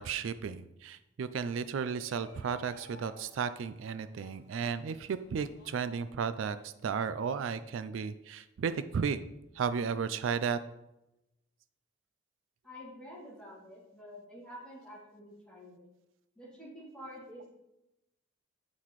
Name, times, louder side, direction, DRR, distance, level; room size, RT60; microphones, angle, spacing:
voice 1, 0.0-9.2 9.5-10.6, right 6 dB, 80° right, 13 dB, 0.3 m, -34 dB
Shout, 1.5-6.7, left 2 dB, 55° left, 0.9 m, -57 dB
voice 2, 12.6-15.8 16.4-17.5, equal, 5° left, -7 dB, 2.5 m, -48 dB
8.4 x 5.7 x 3.1 m, 0.91 s
head